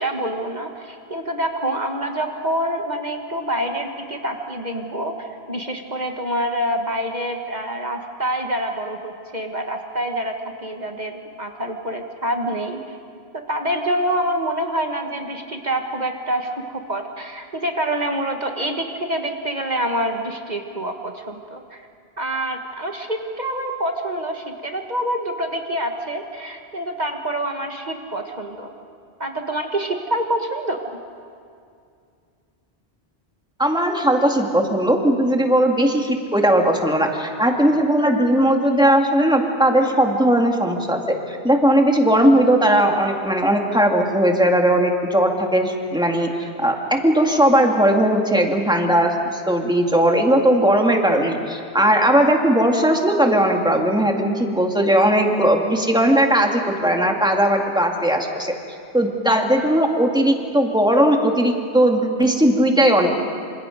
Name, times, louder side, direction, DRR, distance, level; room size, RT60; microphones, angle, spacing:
voice 1, 0.0-12.8 13.5-21.9 22.2-28.7 29.2-30.8, right 1 dB, 40° right, 3 dB, 1.6 m, -26 dB
voice 2, 33.6-41.0 41.3-58.5 58.9-63.1, right 1 dB, 5° right, 2 dB, 2.1 m, -18 dB
27.5 x 26.5 x 5.2 m, 2.3 s
omnidirectional pair, 1.1 m